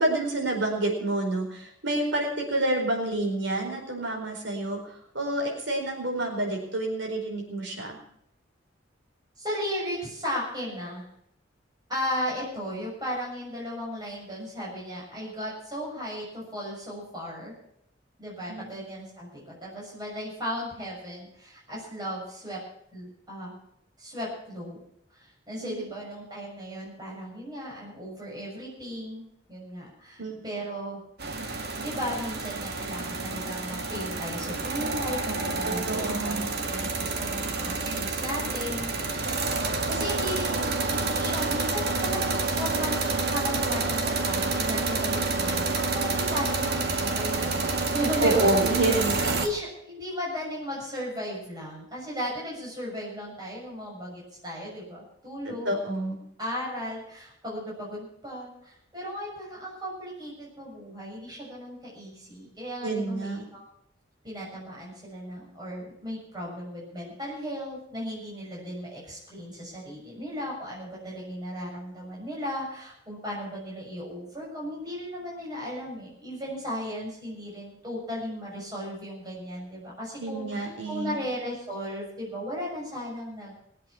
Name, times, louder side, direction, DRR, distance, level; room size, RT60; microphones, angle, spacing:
voice 1, 0.0-4.8 5.1-8.0 18.5-18.7 25.6-25.8 30.2-30.4 35.6-36.4 48.2-49.4 55.4-56.2 62.8-63.5 80.2-81.2, right 2 dB, 70° right, 1 dB, 4.5 m, -28 dB
voice 2, 9.4-11.0 11.9-17.5 18.2-22.6 22.9-23.6 24.0-24.8 25.1-31.0 31.8-39.5 39.9-48.6 49.2-55.8 56.4-63.7 64.2-83.5, equal, 20° right, -5 dB, 6.9 m, -36 dB
sound 1, 31.2-49.5, right 3 dB, 55° right, 1.7 m, -28 dB
20.5 x 8.3 x 7.2 m, 0.72 s
head